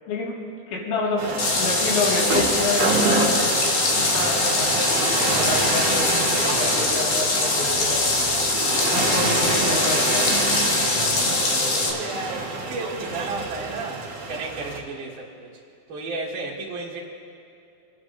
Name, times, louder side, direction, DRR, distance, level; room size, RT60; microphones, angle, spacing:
voice 1, 0.7-3.5 3.9-8.0 8.9-10.3, left 3 dB, 80° left, -4 dB, 4.3 m, -28 dB
sound 1, 1.2-14.8, right 3 dB, 90° right, 1.4 m, -26 dB
sound 2, 1.4-11.9, left 3 dB, 65° left, 2.6 m, -23 dB
voice 2, 11.0-15.5 15.9-17.0, right 3 dB, 60° right, -7 dB, 1.3 m, -34 dB
28.5 x 9.8 x 2.6 m, 2.7 s
omnidirectional pair, 5.3 m